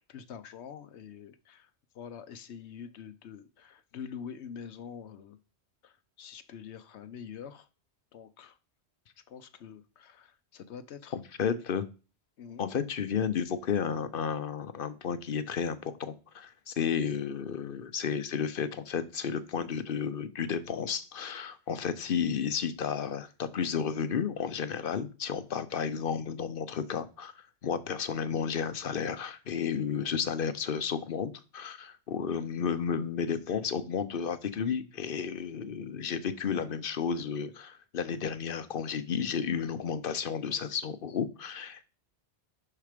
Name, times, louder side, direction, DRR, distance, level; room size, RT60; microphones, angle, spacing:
voice 1, 0.1-1.7 1.9-5.4 5.8-7.7 8.1-8.6 9.3-11.2 12.4-12.7 36.5-36.6, left 7 dB, 85° left, 11 dB, 1.0 m, -45 dB
voice 2, 11.1-11.9 12.6-27.3 27.6-41.8, left 7 dB, 60° left, 12 dB, 0.8 m, -32 dB
6.5 x 5.8 x 5.0 m, 0.33 s
omnidirectional pair, 1.1 m